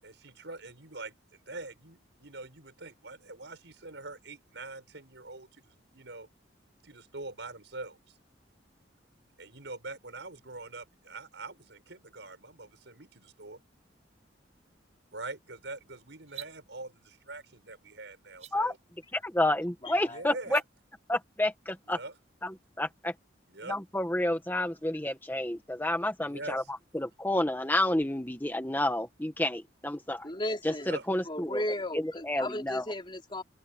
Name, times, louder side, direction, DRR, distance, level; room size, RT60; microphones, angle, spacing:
voice 1, 0.0-6.3 6.8-8.2 9.4-13.6 15.1-18.8 20.0-20.6 21.8-22.1 23.5-23.8 26.2-26.7 30.8-31.1, right 2 dB, 70° right, 6.0 m, -44 dB
sound 1, 16.2-16.6 18.3-18.5 20.4-20.6, right 14 dB, 35° right, 5.1 m, -45 dB
voice 2, 19.1-20.6 21.1-22.0 22.4-23.1 23.7-26.6 26.9-30.3 30.6-31.6 31.9-32.9, left 1 dB, 10° left, 1.3 m, -30 dB
voice 3, 19.8-20.2 30.2-30.9 31.3-33.4, left 1 dB, 25° left, 3.7 m, -35 dB
open air
head